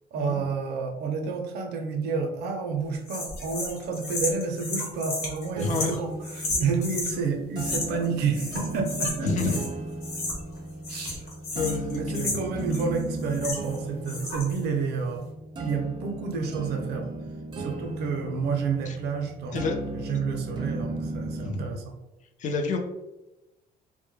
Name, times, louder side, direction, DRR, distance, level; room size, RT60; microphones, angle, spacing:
voice 1, 0.1-9.5 10.9-11.2 11.9-15.3 15.6-17.1 17.6-19.6 19.9-21.9, right 5 dB, 75° right, 3 dB, 0.5 m, -30 dB
sound 1, 3.1-7.2 7.6-8.1 8.3-9.7 10.0-10.6 10.8-13.8 14.0-14.6, left 2 dB, 70° left, 1.0 m, -33 dB
voice 2, 5.6-6.0 9.2-9.6 11.5-12.3 18.9-19.0 19.5-19.8 21.4-21.8 22.4-22.8, left 4 dB, 45° left, 4 dB, 0.5 m, -28 dB
sound 2, 5.6-21.6, right 2 dB, 25° right, 0.3 m, -36 dB
2.1 x 2.1 x 3.0 m, 0.96 s
cardioid pair, 110°, 17 cm